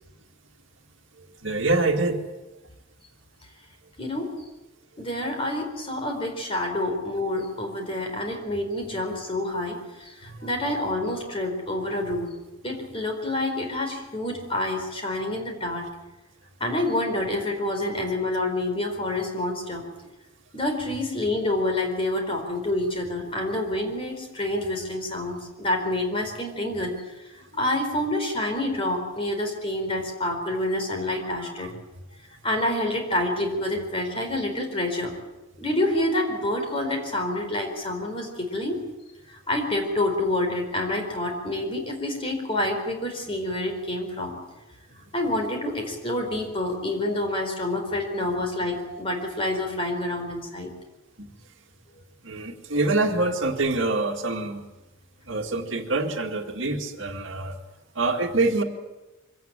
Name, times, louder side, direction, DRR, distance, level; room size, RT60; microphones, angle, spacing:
voice 1, 1.4-2.2 10.2-10.4 27.9-28.0 31.4-31.7 48.9-49.0 51.2-51.3 52.2-54.6 55.3-57.5 58.0-58.6, right 2 dB, 65° right, 4 dB, 2.1 m, -25 dB
voice 2, 4.0-4.3 5.0-12.3 12.6-15.9 16.6-19.8 20.5-26.9 27.3-31.7 32.4-35.1 35.6-38.8 39.3-44.4 45.1-50.7, left 1 dB, 25° left, 4 dB, 4.4 m, -28 dB
24.0 x 17.0 x 9.0 m, 1.1 s
head